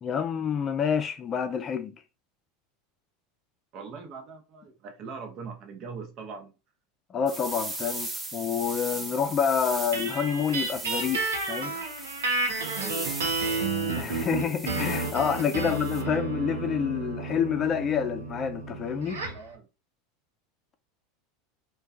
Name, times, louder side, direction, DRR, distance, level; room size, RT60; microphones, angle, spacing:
voice 1, 0.0-1.9 7.1-11.9 14.0-19.2, left 7 dB, 35° left, 0.4 m, -28 dB
voice 2, 3.7-6.5 12.7-13.2 15.6-15.7 19.3-19.7, right 5 dB, 45° right, 0.8 m, -41 dB
sound 1, 7.3-16.0, right 2 dB, 20° right, 0.7 m, -38 dB
sound 2, 9.9-19.5, right 3 dB, 80° right, 0.6 m, -31 dB
2.3 x 2.2 x 2.6 m
hypercardioid pair, 85°, 0 cm